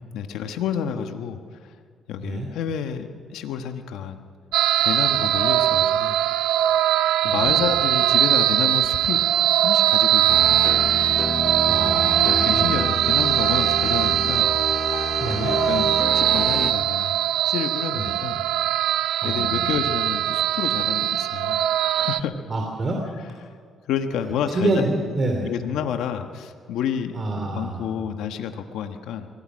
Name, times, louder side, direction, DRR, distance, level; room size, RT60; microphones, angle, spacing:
voice 1, 0.1-1.4 2.1-4.3 4.8-6.2 7.2-9.2 9.6-10.6 12.2-14.5 15.4-17.1 17.5-18.4 19.2-22.4 23.9-24.9 25.4-29.3, left 8 dB, 90° left, 6 dB, 1.3 m, -29 dB
sound 1, 4.5-22.2, right 12 dB, 85° right, 0.5 m, -21 dB
voice 2, 7.2-7.7 11.6-12.8 15.2-15.5 17.9-18.2 19.2-19.7 22.5-23.0 24.5-25.5 27.1-27.9, right 2 dB, 40° right, 2 dB, 3.0 m, -27 dB
sound 2, 10.3-16.7, left 5 dB, 35° left, 0.6 m, -30 dB
24.0 x 17.5 x 6.4 m, 2.1 s
cardioid pair, 90°, 0 cm